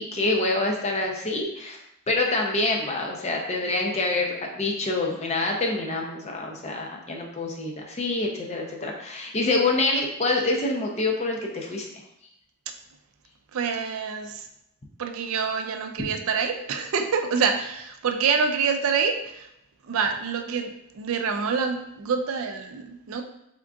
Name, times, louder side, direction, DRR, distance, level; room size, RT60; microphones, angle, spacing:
voice 1, 0.0-1.8 2.1-11.9, left 2 dB, 30° left, 0 dB, 0.5 m, -26 dB
voice 2, 13.5-14.5 15.0-19.5 19.8-23.2, right 6 dB, 65° right, 5 dB, 0.4 m, -26 dB
3.7 x 3.6 x 2.3 m, 0.79 s
head